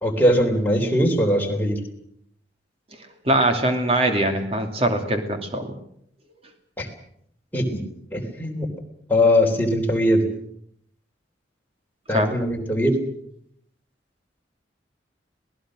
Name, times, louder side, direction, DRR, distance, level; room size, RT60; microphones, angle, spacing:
voice 1, 0.0-1.8 6.8-6.9 7.5-7.8 8.1-8.7 9.1-10.3 12.1-13.0, left 1 dB, 10° left, 0 dB, 3.6 m, -20 dB
voice 2, 3.2-5.8 12.1-12.3, right 1 dB, 35° right, 5 dB, 2.8 m, -22 dB
27.0 x 18.5 x 6.4 m, 0.69 s
head